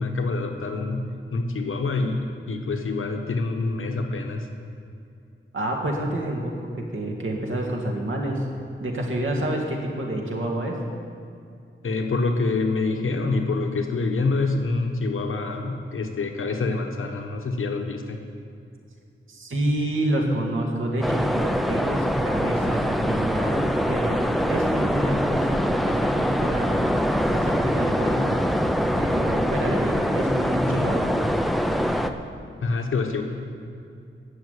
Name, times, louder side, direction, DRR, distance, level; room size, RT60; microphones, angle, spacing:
voice 1, 0.0-4.5 11.8-18.2 32.6-33.2, left 3 dB, 80° left, 4 dB, 1.1 m, -26 dB
voice 2, 5.5-8.5 8.8-10.8 19.3-24.2 24.5-26.8 27.3-28.4 28.9-31.1, right 1 dB, 75° right, 0 dB, 2.0 m, -28 dB
sound 1, 21.0-32.1, equal, ahead, 0.5 m, -24 dB
11.5 x 7.3 x 8.4 m, 2.5 s
wide cardioid pair, 130°, 21 cm